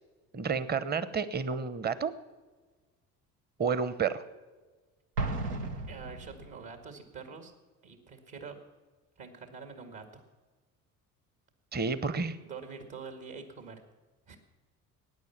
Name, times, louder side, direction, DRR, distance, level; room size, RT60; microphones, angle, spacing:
voice 1, 0.3-2.1 3.6-4.2 11.7-12.4, right 5 dB, 20° right, 15 dB, 0.9 m, -30 dB
Explosion, 5.2-6.7, right 2 dB, 90° right, 1.0 m, -35 dB
voice 2, 5.9-7.5 7.8-8.6 9.2-10.2 12.4-13.8 14.3-14.4, right 5 dB, 55° right, 6 dB, 2.2 m, -45 dB
15.5 x 9.6 x 7.4 m, 1.3 s
hypercardioid pair, 55°, 46 cm